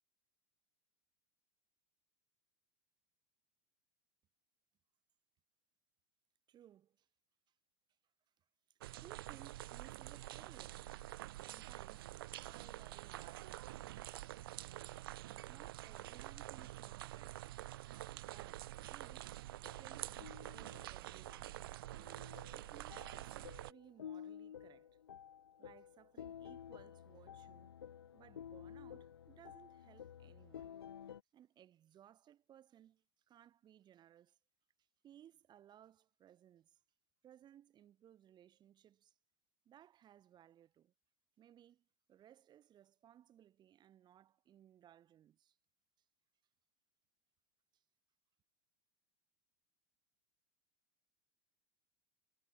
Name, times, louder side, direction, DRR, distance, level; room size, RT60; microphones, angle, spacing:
voice 1, 6.5-7.1 9.0-11.0 11.3-14.0 15.5-17.5 18.2-19.4 19.7-21.6 22.5-25.0 25.6-27.8 28.1-30.8 31.1-34.4 35.0-36.8 37.2-39.1 39.7-40.9 41.4-45.6 47.7-47.8, right 11 dB, 35° right, 7.5 m, -63 dB
sound 1, 8.8-23.7, right 15 dB, 65° right, 0.4 m, -48 dB
sound 2, 19.5-31.2, left 9 dB, 75° left, 2.5 m, -53 dB
figure-of-eight pair, 85°, 13 cm